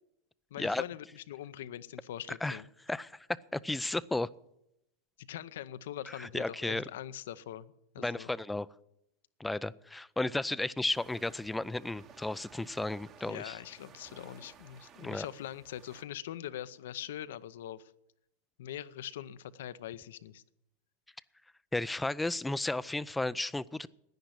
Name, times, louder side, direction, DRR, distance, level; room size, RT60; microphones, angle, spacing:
voice 1, 0.5-2.6 5.2-8.3 13.3-17.9 18.6-20.4, left 11 dB, 75° left, 15 dB, 0.7 m, -43 dB
voice 2, 2.3-2.6 2.9-3.3 3.5-4.3 6.1-6.8 8.0-8.7 9.4-13.6 15.0-15.3 21.7-23.9, left 2 dB, 5° left, 17 dB, 0.5 m, -34 dB
sound 1, 10.9-16.0, right 7 dB, 35° right, 1.3 m, -57 dB
10.5 x 10.0 x 9.9 m, 0.84 s
hypercardioid pair, 110°, 0 cm